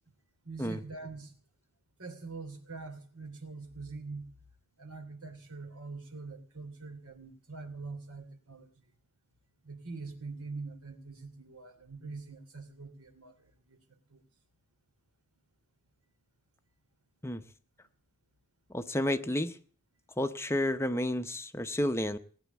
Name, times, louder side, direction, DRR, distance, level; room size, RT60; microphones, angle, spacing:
voice 1, 0.4-1.3 2.0-4.3 4.8-8.7 9.6-13.3 13.7-13.8 14.1-14.2, right 3 dB, 75° right, 6 dB, 3.0 m, -44 dB
voice 2, 18.7-19.6 20.2-22.2, left 1 dB, 10° left, 8 dB, 0.7 m, -31 dB
19.0 x 9.2 x 8.3 m, 0.43 s
head